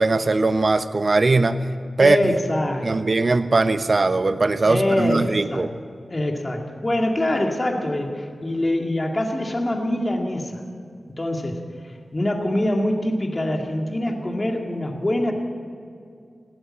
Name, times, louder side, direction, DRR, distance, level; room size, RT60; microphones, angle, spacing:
voice 1, 0.0-1.7 2.0-2.4 2.8-5.7, right 3 dB, 55° right, 11 dB, 0.9 m, -20 dB
voice 2, 2.0-3.0 4.7-5.7 6.1-10.6 11.2-11.6 12.1-15.3, left 1 dB, 35° left, 2 dB, 2.2 m, -24 dB
16.5 x 10.0 x 8.8 m, 2.3 s
cardioid pair, 50°, 0 cm